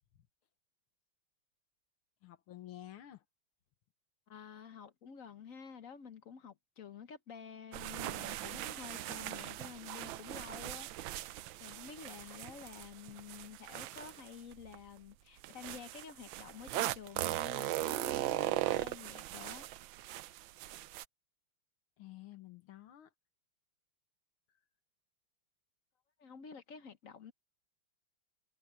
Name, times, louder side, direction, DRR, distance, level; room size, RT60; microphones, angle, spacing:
voice 1, 2.2-3.2 22.0-23.1 24.5-24.6, left 13 dB, 80° left, 1.9 m, -51 dB
voice 2, 4.3-11.2 11.6-19.7 26.2-27.3, left 7 dB, 55° left, 1.0 m, -50 dB
sound 1, 7.7-14.8 15.4-21.0, right 15 dB, 75° right, 1.3 m, -39 dB
omnidirectional pair, 2.3 m